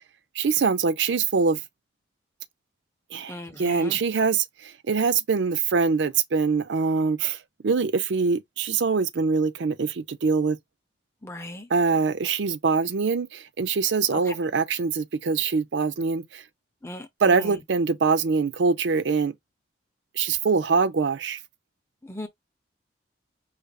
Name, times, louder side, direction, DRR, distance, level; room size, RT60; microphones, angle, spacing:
voice 1, 0.4-1.6 3.1-7.4 7.6-10.6 11.7-16.4 17.2-19.3 20.2-21.4, right 5 dB, 80° right, 0.5 m, -24 dB
voice 2, 3.3-4.0 11.2-11.7 14.3-14.4 16.8-17.6 22.0-22.3, left 1 dB, 15° left, 0.7 m, -37 dB
5.0 x 3.2 x 2.3 m
head